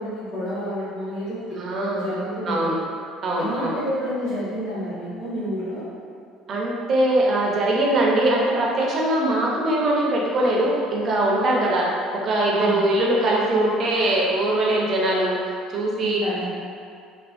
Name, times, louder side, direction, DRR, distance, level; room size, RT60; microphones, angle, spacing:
voice 1, 0.0-1.6 1.9-2.8 3.3-5.8 12.5-12.8 16.0-16.5, equal, 70° left, -11 dB, 1.4 m, -29 dB
voice 2, 1.6-2.1 2.5-2.8 3.2-3.8 6.5-11.9 12.2-15.4 15.7-16.2, right 1 dB, 35° right, -3 dB, 0.4 m, -21 dB
3.3 x 2.2 x 2.4 m, 2.4 s
cardioid pair, 150°, 0 cm